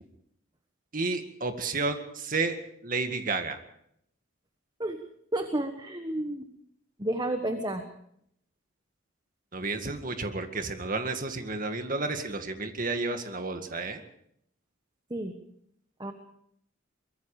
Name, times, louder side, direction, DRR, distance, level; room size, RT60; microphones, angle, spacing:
voice 1, 0.9-2.6 2.8-3.6 9.5-14.0, right 3 dB, 45° right, 7 dB, 2.0 m, -31 dB
voice 2, 5.3-6.5 7.0-7.8 15.1-15.4 16.0-16.1, right 1 dB, 20° right, 6 dB, 1.3 m, -31 dB
24.0 x 21.5 x 5.0 m, 0.71 s
head